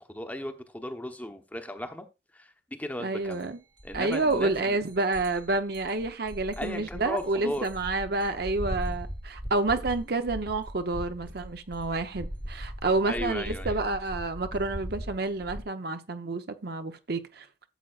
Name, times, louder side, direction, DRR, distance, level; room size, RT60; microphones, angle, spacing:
voice 1, 0.1-2.1 2.3-3.5 3.8-4.8 6.6-7.6 13.0-13.8, left 1 dB, 10° left, 0.9 m, -36 dB
voice 2, 3.0-3.6 3.9-17.5, right 3 dB, 60° right, 0.8 m, -29 dB
sound 1, 3.3-3.4 3.8-15.6, equal, 25° right, 1.2 m, -39 dB
13.5 x 7.6 x 2.4 m
head